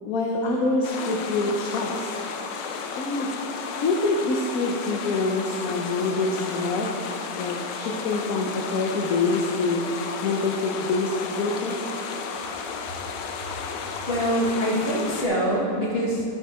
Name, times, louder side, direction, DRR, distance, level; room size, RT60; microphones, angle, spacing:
voice 1, 0.0-2.1 3.0-3.3 3.8-7.0 7.3-9.8 10.2-11.1 11.4-11.7, left 3 dB, 60° left, 0 dB, 1.2 m, -25 dB
sound 1, 0.8-15.3, left 5 dB, 90° left, 1.4 m, -33 dB
voice 2, 14.1-16.2, equal, 35° left, -3 dB, 1.9 m, -24 dB
12.5 x 6.5 x 4.4 m, 2.4 s
omnidirectional pair, 1.9 m